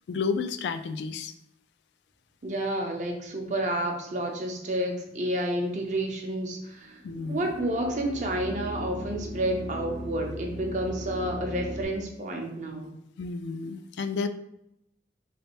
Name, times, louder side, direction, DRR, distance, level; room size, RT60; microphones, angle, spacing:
voice 1, 0.1-1.3 7.0-7.5 13.2-14.3, left 5 dB, 75° left, 9 dB, 0.3 m, -31 dB
voice 2, 2.4-7.0 7.3-12.9, right 1 dB, 40° right, 2 dB, 0.6 m, -30 dB
sound 1, 6.8-11.8, equal, 90° right, 0.8 m, -37 dB
3.3 x 3.2 x 3.0 m, 0.79 s
head